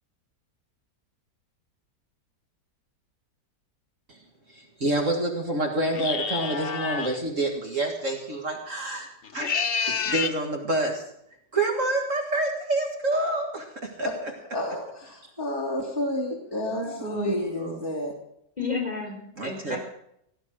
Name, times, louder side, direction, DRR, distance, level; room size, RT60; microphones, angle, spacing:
voice 1, 4.5-9.5 9.9-11.0 11.5-14.1 16.7-17.8 19.4-19.8, right 2 dB, 45° right, 2 dB, 2.2 m, -28 dB
sound 1, 5.9-7.2 9.2-10.4, left 6 dB, 45° left, 0.9 m, -28 dB
voice 2, 14.5-18.1, left 1 dB, 15° right, -3 dB, 2.4 m, -30 dB
voice 3, 18.6-19.8, left 4 dB, 20° left, 2 dB, 4.2 m, -31 dB
17.0 x 12.0 x 6.4 m, 0.75 s
omnidirectional pair, 1.9 m